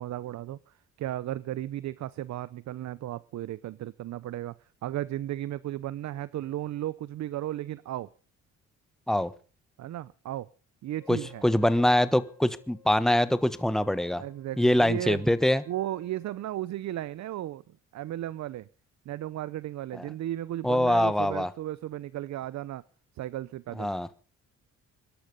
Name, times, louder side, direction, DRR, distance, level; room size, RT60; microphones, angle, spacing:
voice 1, 0.0-4.5 4.8-8.1 9.8-10.5 10.8-11.4 14.1-15.3 15.7-18.7 19.1-22.8 23.2-23.9, right 13 dB, 65° right, 19 dB, 0.7 m, -35 dB
Wind instrument woodwind instrument, 10.9-16.6, left 4 dB, 55° left, 4.2 m, -57 dB
voice 2, 11.4-14.2 14.6-15.6 20.6-21.5 23.8-24.1, left 1 dB, ahead, 14 dB, 1.2 m, -23 dB
21.5 x 12.0 x 5.3 m, 0.39 s
cardioid pair, 90°, 30 cm